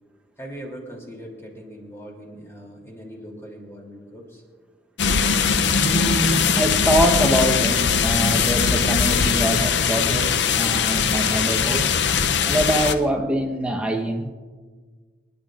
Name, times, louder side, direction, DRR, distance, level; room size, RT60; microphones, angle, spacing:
voice 1, 0.4-4.4, equal, 15° left, -1 dB, 2.9 m, -40 dB
sound 1, 5.0-12.9, left 6 dB, 80° left, 0.6 m, -20 dB
voice 2, 5.8-11.9 12.4-14.3, equal, 5° right, 1 dB, 1.0 m, -24 dB
29.5 x 10.5 x 2.5 m, 1.5 s
head